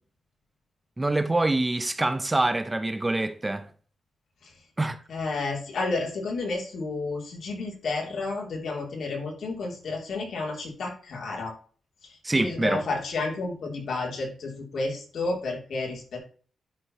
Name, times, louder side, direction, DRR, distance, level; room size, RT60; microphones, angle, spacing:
voice 1, 1.0-3.7 4.8-5.0 12.2-12.8, right 2 dB, 15° right, 0.4 m, -25 dB
voice 2, 5.1-11.5 12.0-16.2, left 3 dB, 65° left, 3.1 m, -31 dB
11.0 x 4.6 x 3.0 m
wide cardioid pair, 150°, 0 cm